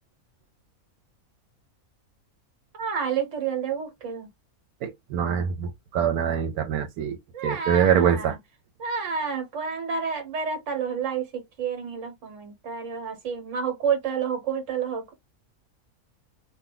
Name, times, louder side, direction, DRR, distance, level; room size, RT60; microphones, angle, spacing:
voice 1, 2.7-4.3 7.3-8.4 8.8-15.1, right 6 dB, 55° right, 1.4 m, -29 dB
voice 2, 4.8-7.2 7.4-8.4, right 8 dB, 85° right, 1.1 m, -24 dB
2.7 x 2.2 x 3.7 m
omnidirectional pair, 1.5 m